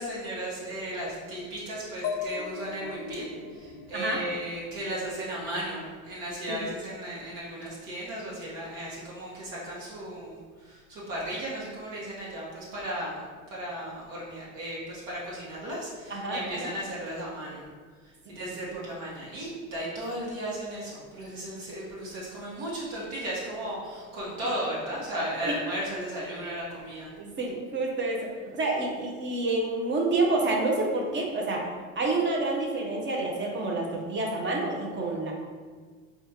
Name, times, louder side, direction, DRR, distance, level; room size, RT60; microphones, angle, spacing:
voice 1, 0.0-10.4 10.6-13.2 13.5-17.7 18.3-27.1, right 1 dB, 60° right, -7 dB, 1.3 m, -35 dB
sound 1, 2.0-5.7, left 7 dB, 40° left, 0.4 m, -38 dB
voice 2, 16.1-16.7 18.3-18.4 18.7-18.8 25.5-25.6 27.2-31.6 32.0-35.3, right 2 dB, 30° right, 0 dB, 0.8 m, -28 dB
4.2 x 2.5 x 2.8 m, 1.5 s
hypercardioid pair, 85°, 40 cm